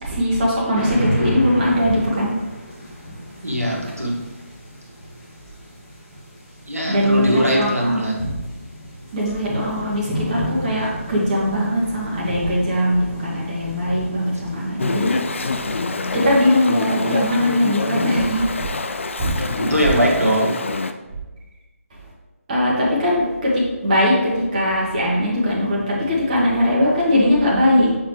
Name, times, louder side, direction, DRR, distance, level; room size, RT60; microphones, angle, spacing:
voice 1, 0.0-2.3 6.9-8.4 9.1-19.4 21.9-22.0 22.5-28.0, left 1 dB, 30° right, -6 dB, 1.5 m, -20 dB
sound 1, 0.7-18.5, equal, 15° left, 1.8 m, -33 dB
voice 2, 3.4-4.2 6.7-8.2 19.4-20.6, equal, 85° right, -3 dB, 1.7 m, -21 dB
Chatter / Stream, 14.8-20.9, left 3 dB, 55° left, 0.4 m, -26 dB
7.4 x 4.1 x 3.2 m, 1.2 s
figure-of-eight pair, 150°, 8 cm